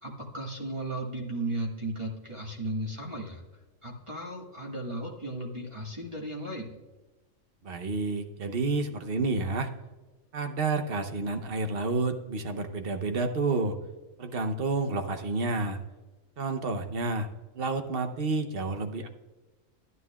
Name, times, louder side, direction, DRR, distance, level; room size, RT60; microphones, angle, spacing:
voice 1, 0.0-3.4 3.8-6.8, right 1 dB, 20° right, -2 dB, 1.5 m, -35 dB
voice 2, 7.6-9.7 10.3-13.8 14.2-15.8 16.4-17.3 17.5-19.1, right 3 dB, 50° right, 7 dB, 0.9 m, -30 dB
13.0 x 9.5 x 2.3 m, 1.2 s
omnidirectional pair, 1.4 m